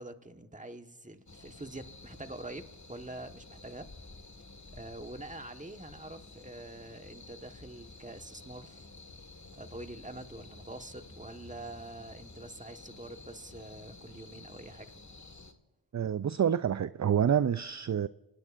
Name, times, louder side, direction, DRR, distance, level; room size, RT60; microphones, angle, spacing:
voice 1, 0.0-3.9 4.7-8.9 9.5-15.0, right 2 dB, 15° right, 1.4 m, -45 dB
sound 1, 1.3-15.5, left 3 dB, 40° left, 1.7 m, -51 dB
voice 2, 15.9-18.1, right 8 dB, 40° right, 0.4 m, -27 dB
27.0 x 18.5 x 2.6 m
cardioid pair, 50°, 45 cm